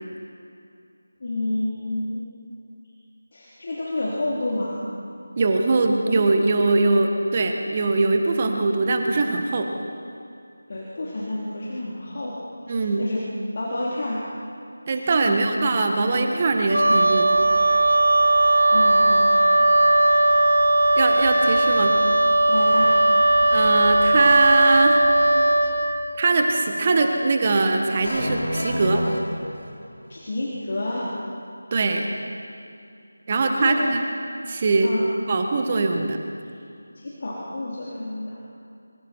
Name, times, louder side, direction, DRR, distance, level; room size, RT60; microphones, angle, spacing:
voice 1, 1.2-2.2 3.3-4.8 10.7-12.4 12.7-13.2 13.5-14.2 14.9-15.0 15.3-15.6 18.7-19.4 19.9-20.2 22.5-23.0 30.1-31.1 33.6-33.9 34.8-35.0 37.0-38.4, left 1 dB, 40° left, -6 dB, 3.8 m, -29 dB
voice 2, 5.4-9.7 12.7-13.1 14.9-17.3 20.9-22.0 23.5-25.0 26.2-29.0 31.7-32.1 33.3-34.0 34.5-34.9 35.3-36.2, right 3 dB, 30° right, 4 dB, 1.6 m, -21 dB
Wind instrument woodwind instrument, 16.7-25.8, right 2 dB, 80° right, 5.9 m, -18 dB
sound 1, 28.0-30.0, equal, 70° left, 5.6 m, -28 dB
26.5 x 24.0 x 4.7 m, 2.5 s
figure-of-eight pair, 165°, 0 cm